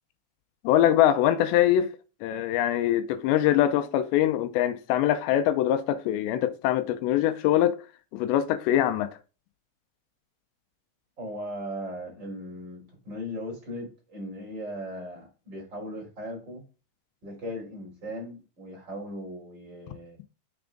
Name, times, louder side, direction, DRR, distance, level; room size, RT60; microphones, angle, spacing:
voice 1, 0.6-1.9 2.2-7.8 8.1-9.1, left 11 dB, 80° left, 2.7 m, -23 dB
voice 2, 11.2-16.6 17.2-20.2, equal, 25° right, 3.8 m, -38 dB
7.0 x 7.0 x 3.8 m
omnidirectional pair, 5.3 m